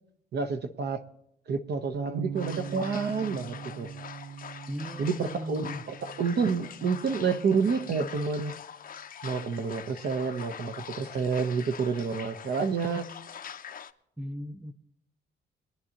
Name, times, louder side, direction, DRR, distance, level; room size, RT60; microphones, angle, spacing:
voice 1, 0.3-1.0 1.5-3.9 5.0-8.5 9.2-13.1, right 5 dB, 55° right, 1.0 m, -29 dB
sound 1, 1.9-8.2, right 6 dB, 80° right, 0.7 m, -42 dB
sound 2, 2.3-13.9, left 8 dB, 45° left, 0.7 m, -44 dB
voice 2, 4.7-5.8 14.2-14.7, equal, 5° right, 0.5 m, -37 dB
22.0 x 9.8 x 2.9 m
cardioid pair, 90°, 20 cm